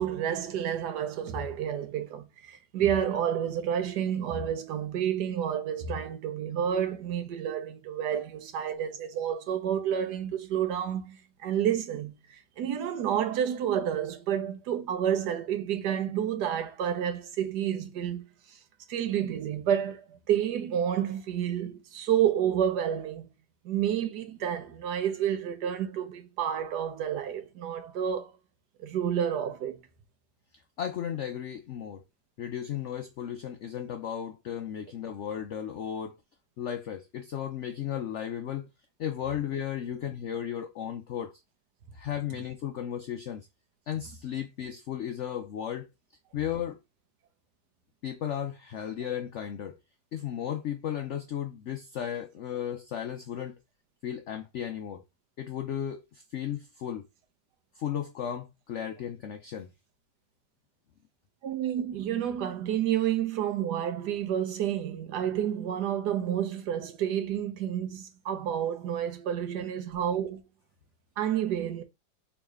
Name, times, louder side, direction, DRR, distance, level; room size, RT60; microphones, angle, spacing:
voice 1, 0.0-18.6 18.9-23.3 23.6-28.3 28.8-29.8 61.4-70.4 71.2-71.8, right 9 dB, 70° right, 1.3 m, -30 dB
voice 2, 30.8-32.0 32.4-36.2 36.6-38.7 39.0-41.4 41.9-43.5 43.9-45.9 46.3-46.8 48.0-49.8 50.1-53.5 54.0-55.0 55.4-57.1 57.7-59.7, left 9 dB, 75° left, 0.6 m, -35 dB
3.6 x 3.1 x 4.7 m
omnidirectional pair, 1.9 m